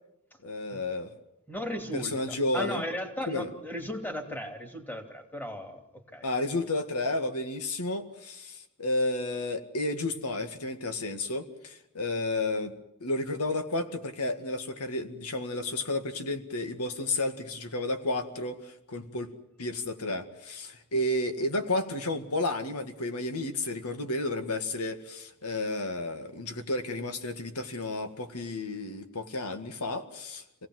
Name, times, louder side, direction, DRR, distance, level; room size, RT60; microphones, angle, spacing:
voice 1, 0.4-1.1 1.9-2.8 3.3-3.5 6.2-12.7 13.0-19.3 19.6-30.7, left 2 dB, 90° left, 7 dB, 1.9 m, -32 dB
voice 2, 1.5-5.8 6.1-6.3, equal, 10° left, 4 dB, 2.8 m, -36 dB
26.5 x 17.5 x 7.7 m, 0.86 s
head